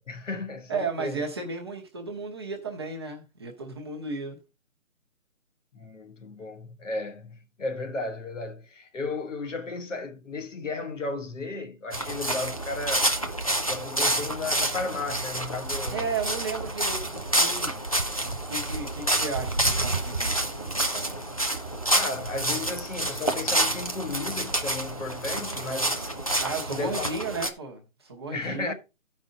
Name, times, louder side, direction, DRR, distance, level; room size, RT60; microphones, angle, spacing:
voice 1, 0.0-1.2 5.7-13.1 13.6-16.1 21.9-26.1 26.5-27.1 28.3-28.7, left 3 dB, 65° left, 1.5 m, -34 dB
voice 2, 0.7-4.4 15.9-17.8 18.5-21.3 26.4-28.7, right 4 dB, 20° right, 0.9 m, -34 dB
sound 1, 11.9-27.5, right 1 dB, 30° left, 0.4 m, -28 dB
13.0 x 5.3 x 3.8 m
figure-of-eight pair, 160°, 40 cm